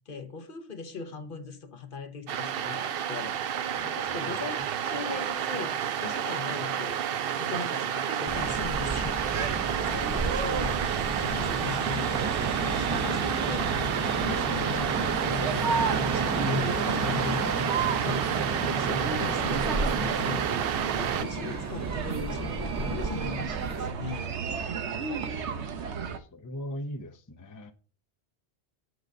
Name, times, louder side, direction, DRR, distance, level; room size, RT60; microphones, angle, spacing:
voice 1, 0.1-3.3 4.0-7.0 7.4-20.6 20.9-24.3, left 5 dB, 55° left, 1.0 m, -39 dB
sound 1, 2.3-21.2, right 9 dB, 65° right, 0.7 m, -30 dB
voice 2, 3.8-4.7 25.8-27.7, equal, 20° left, 0.6 m, -41 dB
sound 2, 8.3-23.9, right 2 dB, 25° right, 0.4 m, -33 dB
sound 3, 9.3-26.2, right 6 dB, 90° right, 1.1 m, -34 dB
8.0 x 3.9 x 6.3 m
omnidirectional pair, 1.1 m